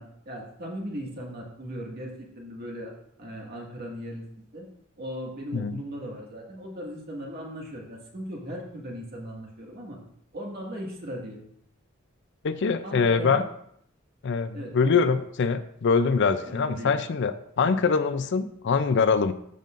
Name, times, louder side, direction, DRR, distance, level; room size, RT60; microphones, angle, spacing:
voice 1, 0.0-2.9 3.2-4.2 4.5-4.7 5.0-10.0 10.3-11.4 12.8-13.4 14.5-15.0 16.4-16.9 17.6-17.7, equal, 50° right, -2 dB, 1.9 m, -38 dB
voice 2, 12.4-13.4 14.2-19.3, left 5 dB, 60° left, 12 dB, 0.4 m, -24 dB
13.0 x 5.3 x 2.5 m, 0.71 s
head